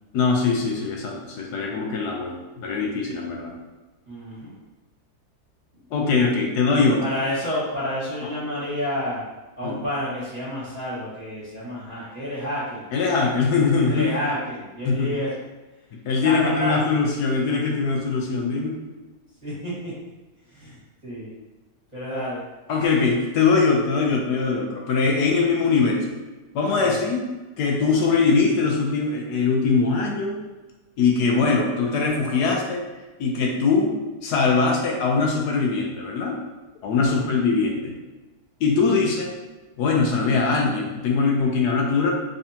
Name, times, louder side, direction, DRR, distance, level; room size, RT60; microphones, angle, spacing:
voice 1, 0.1-3.5 5.9-7.1 8.2-8.3 9.6-9.7 12.9-14.1 14.8-15.2 16.0-18.7 22.7-26.0 26.5-27.2 27.6-30.4 31.0-32.9 33.2-33.9 34.2-36.4 36.8-37.9 38.6-39.3 39.8-42.1, left 4 dB, 80° left, 0 dB, 1.2 m, -22 dB
voice 2, 4.1-4.6 7.0-9.2 9.6-12.8 13.9-15.3 16.2-16.8 19.4-19.9 20.5-20.8 21.0-21.3 21.9-22.4 26.8-27.0 37.0-37.3, left 1 dB, 25° right, -10 dB, 1.5 m, -29 dB
3.6 x 3.3 x 2.8 m, 1.1 s
omnidirectional pair, 1.8 m